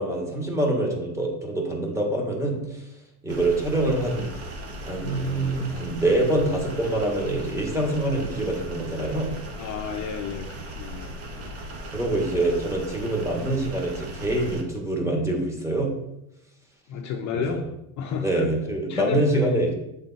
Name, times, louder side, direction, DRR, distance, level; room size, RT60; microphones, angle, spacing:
voice 1, 0.0-2.8 3.2-4.3 4.8-9.3 11.9-15.9 17.3-17.6 18.2-19.7, right 1 dB, 5° right, -1 dB, 1.7 m, -25 dB
sound 1, 3.3-14.6, right 1 dB, 35° right, 1.4 m, -37 dB
voice 2, 9.6-11.5 16.9-18.5 18.9-19.6, left 6 dB, 45° left, 3 dB, 0.7 m, -32 dB
8.1 x 3.8 x 4.1 m, 0.86 s
supercardioid pair, 115°, 40 cm